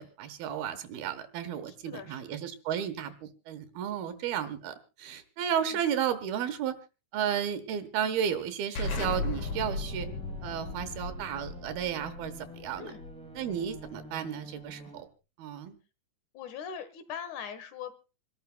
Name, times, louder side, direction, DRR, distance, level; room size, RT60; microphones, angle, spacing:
voice 1, 0.0-6.7 7.1-10.1 10.4-12.9 13.3-15.1 15.4-15.8, right 9 dB, 75° right, 10 dB, 3.0 m, -33 dB
voice 2, 1.7-2.4 5.6-5.8 12.8-13.0 16.3-18.0, left 8 dB, 60° left, 11 dB, 2.3 m, -41 dB
Explosion, 8.8-14.1, left 3 dB, 80° left, 4.4 m, -36 dB
sound 1, 9.0-15.0, equal, 5° left, 0.4 m, -49 dB
27.5 x 13.0 x 2.2 m, 0.31 s
omnidirectional pair, 4.6 m